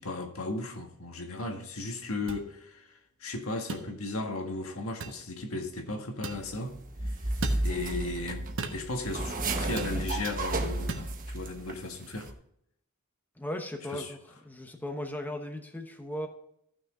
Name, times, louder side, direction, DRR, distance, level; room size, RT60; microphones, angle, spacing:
voice 1, 0.0-6.8 7.0-7.3 7.6-12.3 13.9-14.1, left 2 dB, 70° left, 1.6 m, -36 dB
sound 1, 2.3-2.4 3.7-3.9 5.0-5.2 6.2-6.5 7.4-7.7 8.6-8.8 9.8-10.0 10.9-11.1, right 3 dB, 60° right, 1.2 m, -35 dB
sound 2, 6.3-11.7 12.0-12.3, right 2 dB, 40° right, 1.1 m, -33 dB
voice 2, 13.4-14.2 14.4-16.3, left 1 dB, 10° left, 1.0 m, -37 dB
14.5 x 6.3 x 3.7 m
head